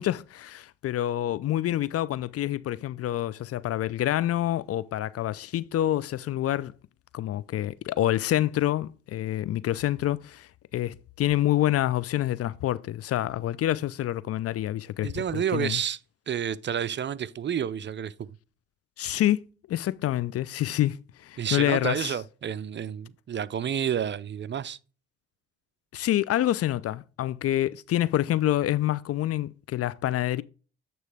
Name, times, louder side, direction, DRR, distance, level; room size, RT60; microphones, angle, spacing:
voice 1, 0.0-6.7 7.1-15.8 19.0-22.1 25.9-30.4, left 13 dB, 50° left, 0.5 m, -27 dB
voice 2, 15.0-16.0 16.3-18.1 21.4-24.8, right 8 dB, 40° right, 0.5 m, -30 dB
9.2 x 3.1 x 4.8 m
hypercardioid pair, 50°, 30 cm